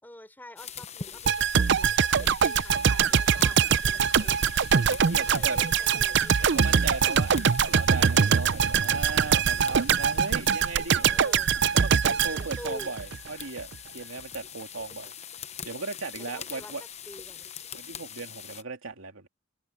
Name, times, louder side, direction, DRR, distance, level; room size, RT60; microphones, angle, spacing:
voice 1, 0.0-4.6 4.9-6.8 10.9-11.5 12.0-12.9 16.3-17.5, left 1 dB, 10° left, 3.7 m, -47 dB
sound 1, 0.6-18.6, left 8 dB, 35° left, 0.8 m, -43 dB
sound 2, 1.2-13.3 13.6-13.7, right 7 dB, 60° right, 0.6 m, -23 dB
voice 2, 4.9-5.6 6.4-11.1 11.7-15.1 15.6-16.8 17.7-19.3, right 3 dB, 85° right, 2.7 m, -37 dB
head